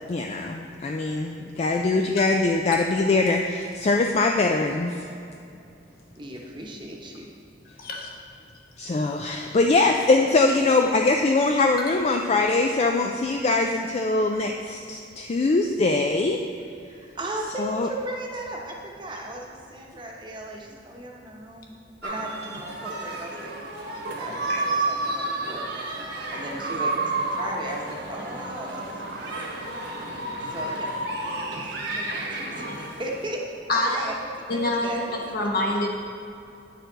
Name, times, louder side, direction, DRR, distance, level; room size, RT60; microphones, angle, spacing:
voice 1, 0.1-5.1 8.8-16.4 17.6-17.9, left 3 dB, 35° left, 3 dB, 0.3 m, -22 dB
voice 2, 6.1-7.3 16.8-21.8 22.0-23.6 24.2-30.9 31.2-33.4 33.9-35.3 35.7-35.8, right 1 dB, 25° right, -1 dB, 1.0 m, -37 dB
voice 3, 7.8-8.1 24.5-24.6 33.7-34.1 34.5-35.9, left 1 dB, 55° left, 0 dB, 1.2 m, -26 dB
sound 1, 22.0-33.2, right 2 dB, 65° right, 1.4 m, -31 dB
9.0 x 6.6 x 3.9 m, 2.6 s
head